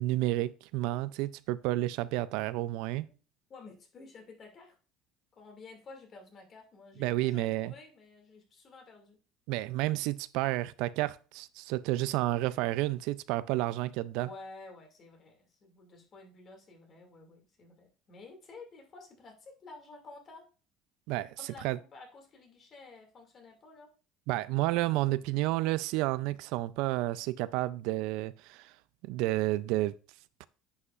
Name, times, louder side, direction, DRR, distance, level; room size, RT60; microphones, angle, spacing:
voice 1, 0.0-3.1 7.0-7.7 9.5-14.3 21.1-21.4 21.6-21.8 24.3-28.7 29.0-29.9 30.4-30.5, right 17 dB, 75° right, 0.3 m, -31 dB
voice 2, 3.5-4.8 5.3-9.2 14.2-20.5 21.4-23.9, left 3 dB, 35° left, 2.2 m, -51 dB
9.7 x 5.5 x 2.4 m
cardioid pair, 130°, 0 cm